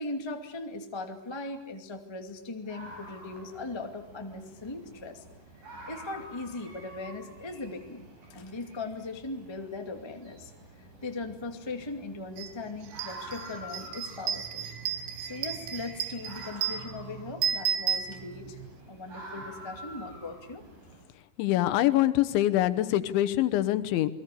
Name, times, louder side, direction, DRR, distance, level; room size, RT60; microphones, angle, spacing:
voice 1, 0.0-5.2 5.9-10.5 11.0-14.7 15.3-18.6 18.9-20.6, left 3 dB, 30° left, 4 dB, 0.5 m, -39 dB
sound 1, 2.7-21.0, right 1 dB, 45° right, 8.6 m, -48 dB
sound 2, 12.4-12.5 12.8-18.7, right 8 dB, 70° right, 3.4 m, -33 dB
voice 2, 21.4-24.1, left 14 dB, 90° left, 13 dB, 3.5 m, -24 dB
29.5 x 20.0 x 8.5 m, 0.84 s
omnidirectional pair, 5.2 m